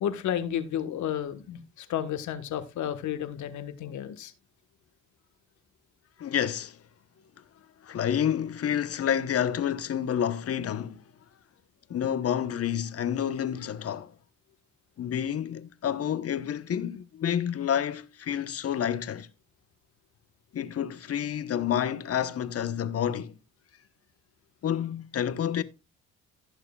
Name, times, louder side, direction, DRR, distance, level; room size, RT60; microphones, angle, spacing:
voice 1, 0.0-4.3, left 10 dB, 70° left, 1.5 m, -32 dB
voice 2, 6.2-6.8 7.8-11.0 11.9-14.1 15.0-19.3 20.5-23.3 24.6-25.6, left 9 dB, 50° left, 1.1 m, -29 dB
16.0 x 6.5 x 2.4 m
supercardioid pair, 65°, 30 cm